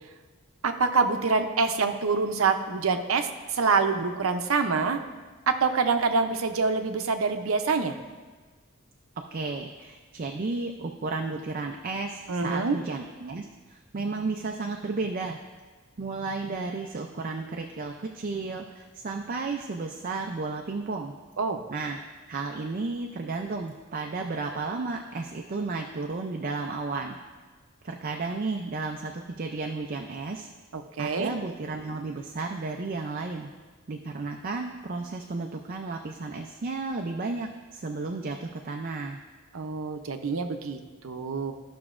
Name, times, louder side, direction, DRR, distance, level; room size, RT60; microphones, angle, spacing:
voice 1, 0.6-5.0 5.5-8.0 12.3-12.8 21.4-21.6 30.7-31.3 39.5-41.5, right 4 dB, 85° right, 7 dB, 0.6 m, -26 dB
voice 2, 9.3-15.4 16.0-21.1 21.7-22.0 22.3-27.2 27.8-30.5 31.0-33.5 33.9-39.2, right 3 dB, 45° right, 3 dB, 0.4 m, -33 dB
14.0 x 5.9 x 2.5 m, 1.4 s
head